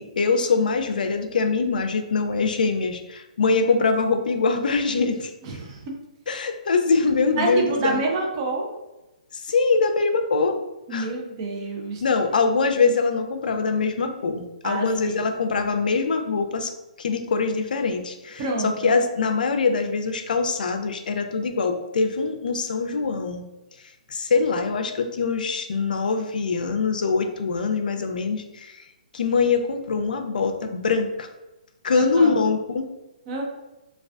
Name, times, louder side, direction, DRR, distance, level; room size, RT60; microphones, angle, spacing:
voice 1, 0.0-5.3 6.3-8.0 9.4-10.6 10.9-11.1 12.0-16.7 17.0-23.4 24.1-28.8 29.1-31.3 31.8-32.9, left 4 dB, 75° left, 6 dB, 0.3 m, -23 dB
voice 2, 5.4-5.8 7.4-8.7 10.9-12.0 14.6-15.3 18.4-18.9 31.9-32.3 33.3-33.4, right 3 dB, 35° right, 1 dB, 0.5 m, -27 dB
2.4 x 2.2 x 2.3 m, 1.0 s
hypercardioid pair, 150°, 5 cm